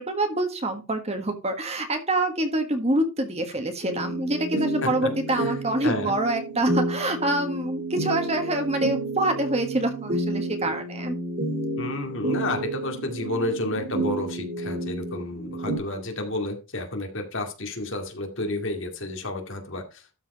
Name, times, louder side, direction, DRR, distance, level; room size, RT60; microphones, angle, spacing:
voice 1, 0.0-11.2, right 1 dB, 30° right, 6 dB, 1.6 m, -26 dB
sound 1, 3.8-15.8, right 2 dB, 45° right, 2.7 m, -30 dB
voice 2, 5.8-6.1 11.8-20.0, left 2 dB, 55° left, 4 dB, 2.2 m, -31 dB
12.5 x 4.8 x 4.8 m, 0.29 s
head